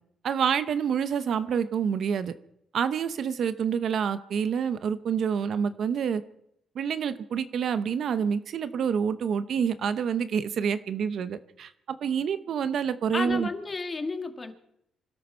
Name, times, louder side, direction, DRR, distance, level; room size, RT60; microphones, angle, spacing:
voice 1, 0.2-2.3 2.7-6.2 6.7-13.5, right 7 dB, 65° right, 12 dB, 0.8 m, -27 dB
voice 2, 13.1-14.5, left 3 dB, 30° left, 6 dB, 1.7 m, -32 dB
25.5 x 12.5 x 4.5 m, 0.76 s
cardioid pair, 90°, 0 cm